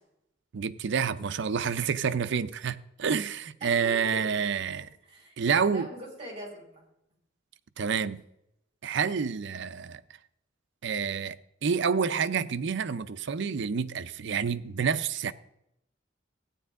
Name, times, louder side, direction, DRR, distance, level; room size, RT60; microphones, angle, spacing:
voice 1, 0.5-4.9 5.4-5.9 7.8-8.2 8.8-10.0 10.8-11.4 11.6-15.3, right 6 dB, 65° right, 0.5 m, -28 dB
voice 2, 3.6-3.9 5.0-6.8, right 1 dB, 30° right, 4.6 m, -43 dB
14.5 x 9.7 x 3.6 m
head